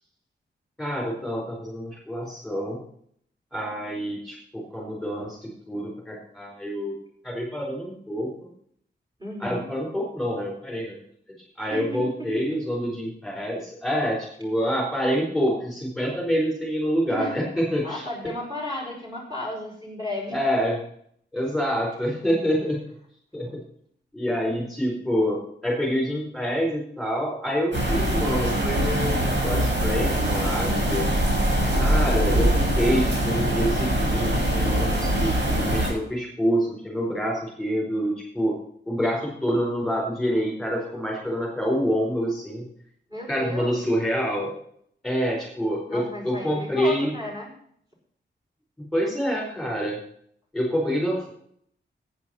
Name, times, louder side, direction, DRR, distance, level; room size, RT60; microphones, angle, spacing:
voice 1, 0.8-2.8 3.5-6.9 7.2-8.5 9.4-11.0 11.6-18.1 20.3-20.8 21.3-22.8 23.3-23.6 24.1-31.1 31.7-38.6 38.9-42.7 43.3-44.5 45.0-47.1 48.8-50.0 50.5-51.3, equal, ahead, -3 dB, 4.6 m, -27 dB
voice 2, 9.2-9.7 11.7-12.6 17.1-17.4 17.8-20.3 43.1-43.8 45.9-47.5, left 1 dB, 20° right, -1 dB, 5.3 m, -34 dB
sound 1, 27.7-35.9, right 1 dB, 75° right, 6.2 m, -23 dB
10.5 x 9.6 x 5.7 m, 0.64 s
wide cardioid pair, 160°, 19 cm